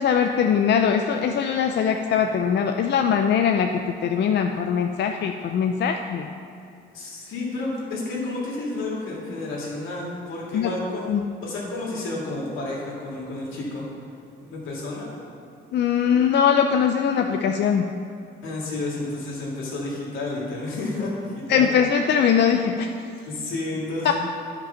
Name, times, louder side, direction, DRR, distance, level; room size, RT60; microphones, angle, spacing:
voice 1, 0.0-6.3 10.5-10.7 11.1-11.2 15.7-17.9 21.5-22.9 24.0-24.1, left 7 dB, 60° left, 5 dB, 0.5 m, -21 dB
voice 2, 6.9-11.1 11.4-13.9 14.4-15.1 18.4-21.7 23.3-24.1, left 2 dB, 90° left, -4 dB, 2.4 m, -31 dB
9.9 x 5.2 x 5.8 m, 2.5 s
cardioid pair, 90°, 20 cm